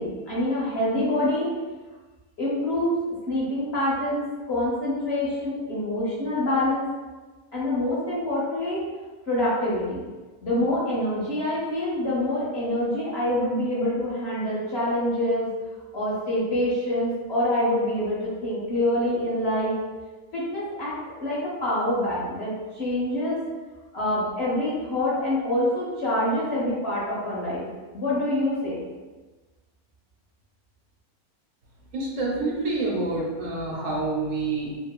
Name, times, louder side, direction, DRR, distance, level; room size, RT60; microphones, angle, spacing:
voice 1, 0.0-1.5 2.4-3.0 3.3-6.9 7.5-8.8 9.3-10.1 10.4-15.5 15.9-19.7 20.3-23.4 23.9-27.6 27.9-28.8, left 1 dB, 50° left, -8 dB, 1.0 m, -26 dB
voice 2, 31.9-34.8, right 3 dB, 75° right, -3 dB, 1.1 m, -27 dB
2.9 x 2.6 x 2.2 m, 1.3 s
omnidirectional pair, 1.6 m